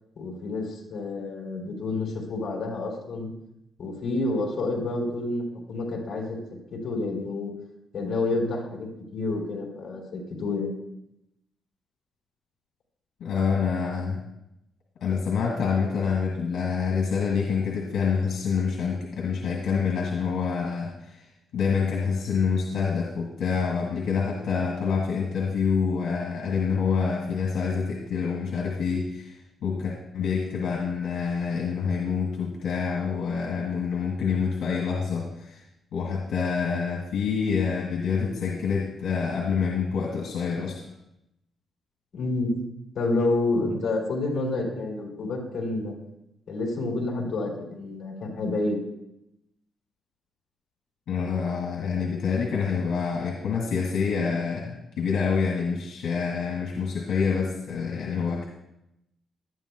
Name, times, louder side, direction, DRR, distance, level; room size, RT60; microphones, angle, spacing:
voice 1, 0.2-3.3 3.8-6.4 6.7-7.5 7.9-10.7 42.1-42.5 42.9-45.9 46.5-48.8, left 2 dB, 45° left, -2 dB, 3.6 m, -29 dB
voice 2, 13.2-14.2 15.0-21.3 21.5-29.3 29.6-35.6 35.9-40.8 51.1-58.5, left 6 dB, 75° left, -1 dB, 2.1 m, -27 dB
18.0 x 12.0 x 2.3 m, 0.85 s
wide cardioid pair, 175°, 0 cm